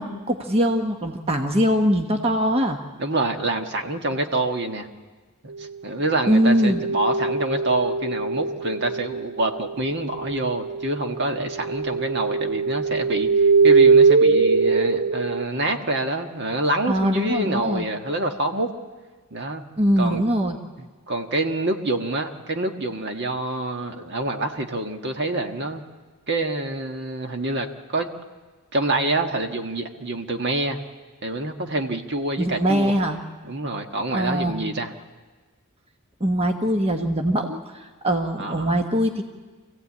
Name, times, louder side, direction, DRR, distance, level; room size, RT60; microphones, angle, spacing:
voice 1, 0.0-2.8 6.3-6.8 16.9-17.9 19.8-20.6 32.4-33.2 34.1-34.7 36.2-39.2, equal, 30° right, 3 dB, 1.2 m, -22 dB
voice 2, 3.0-4.9 5.6-18.7 19.3-19.6 20.0-20.2 21.1-25.8 26.3-28.1 28.7-30.8 31.2-32.9 33.4-34.9 38.4-38.7, right 2 dB, 55° right, 4 dB, 1.5 m, -26 dB
sound 1, 6.6-9.7 10.1-15.4, right 4 dB, 85° right, 2.5 m, -21 dB
26.5 x 16.0 x 8.6 m, 1.4 s
head